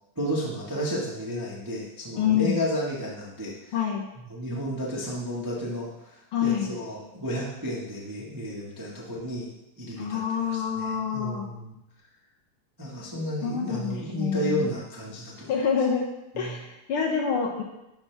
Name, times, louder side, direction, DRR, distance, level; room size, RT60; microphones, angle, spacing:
voice 1, 0.1-3.8 4.3-9.5 9.8-11.7 12.8-15.5 16.3-16.6, equal, 30° right, -4 dB, 0.3 m, -32 dB
voice 2, 2.2-2.6 3.7-4.1 6.3-6.7 10.0-11.5 13.4-14.7 15.5-16.1 16.4-17.6, left 7 dB, 75° left, 1 dB, 1.3 m, -27 dB
11.5 x 5.9 x 3.4 m, 0.92 s
omnidirectional pair, 3.4 m